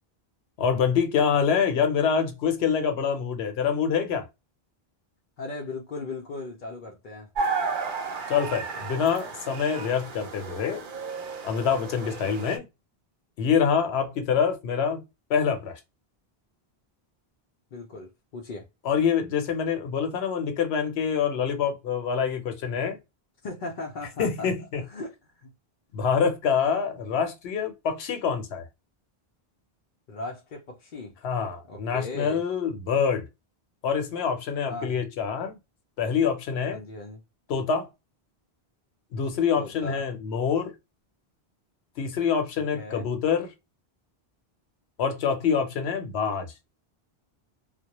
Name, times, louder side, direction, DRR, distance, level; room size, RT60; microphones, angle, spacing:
voice 1, 0.6-4.3 8.3-10.8 11.4-12.6 13.4-15.0 15.3-15.8 18.8-23.0 24.2-24.8 25.9-28.6 31.2-33.2 33.8-35.6 36.0-36.8 37.5-37.9 39.1-40.7 42.0-43.5 45.0-46.5, left 6 dB, 85° left, 0.9 m, -26 dB
voice 2, 5.4-7.3 17.7-18.7 23.4-24.5 24.9-25.5 30.1-31.2 31.7-32.4 34.7-35.0 36.7-37.2 39.6-40.1 42.7-43.1, left 3 dB, 60° left, 0.6 m, -38 dB
sound 1, 7.3-12.6, right 4 dB, 60° right, 0.6 m, -33 dB
2.1 x 2.1 x 2.8 m
omnidirectional pair, 1.0 m